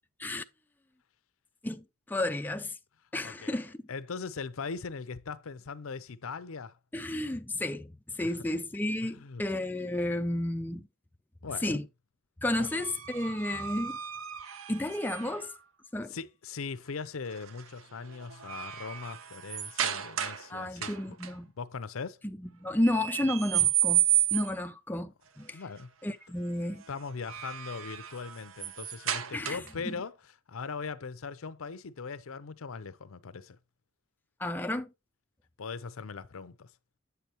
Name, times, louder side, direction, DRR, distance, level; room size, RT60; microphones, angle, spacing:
voice 1, 1.6-2.7 3.1-3.8 6.9-10.9 11.6-11.9 12.4-14.0 14.7-15.5 15.9-16.1 20.5-21.5 22.2-24.0 24.3-25.6 26.0-26.8 29.3-29.6 29.9-30.0 34.4-34.9, left 1 dB, 10° left, 0.3 m, -32 dB
voice 2, 3.2-3.6 3.9-6.7 8.2-8.4 9.0-9.4 11.4-11.8 12.6-12.7 16.1-21.2 21.6-22.2 25.5-25.9 26.9-30.2 30.5-33.6 35.6-36.7, left 5 dB, 80° left, 0.6 m, -40 dB
sound 1, 12.6-15.5 17.3-17.6 18.0-20.5 20.8-21.3 22.8-24.7 27.0-29.9, right 12 dB, 75° right, 0.7 m, -32 dB
8.2 x 6.8 x 2.9 m
head